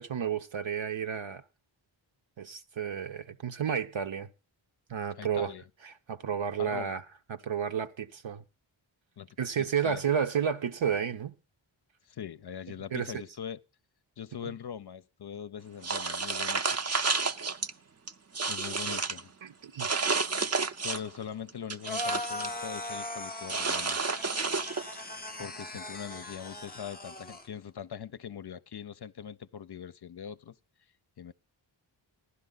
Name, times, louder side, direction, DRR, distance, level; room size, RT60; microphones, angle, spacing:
voice 1, 0.0-1.4 2.4-4.3 4.9-5.5 5.8-7.0 7.3-8.4 9.4-11.3 12.9-13.2 18.9-19.0 19.4-19.9, right 7 dB, 65° right, 1.1 m, -31 dB
voice 2, 5.2-5.6 6.6-7.0 9.2-9.3 9.6-10.0 12.1-13.6 14.2-16.6 18.5-19.3 20.8-24.0 25.0-25.1 25.4-30.5 31.2-31.3, left 8 dB, 55° left, 0.6 m, -42 dB
sound 1, 15.8-17.7 18.1-19.2 19.8-21.2 21.5-22.5 23.5-25.0, right 4 dB, 30° right, 0.7 m, -30 dB
sound 2, 21.8-27.5, left 1 dB, 20° left, 0.7 m, -39 dB
15.5 x 11.5 x 4.0 m
cardioid pair, 60°, 48 cm